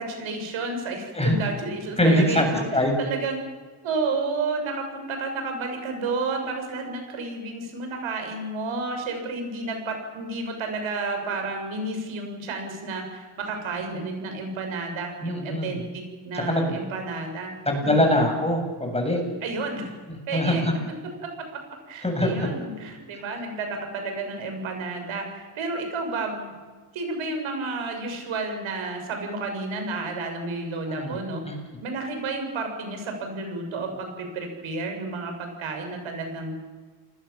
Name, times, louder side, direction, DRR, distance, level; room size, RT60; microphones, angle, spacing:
voice 1, 0.0-3.4 3.8-17.5 17.8-18.0 19.4-19.9 20.3-20.6 21.2-21.6 21.9-26.5 26.9-31.4 31.8-36.6, right 3 dB, 80° right, 4 dB, 7.4 m, -31 dB
voice 2, 1.1-1.5 2.0-2.4 2.7-3.0 15.2-15.8 16.5-16.8 17.7-19.2 20.1-20.7 22.0-22.5 30.9-31.2 31.5-31.6, left 1 dB, 15° left, 3 dB, 7.7 m, -23 dB
29.5 x 20.5 x 7.3 m, 1.4 s
cardioid pair, 105°, 47 cm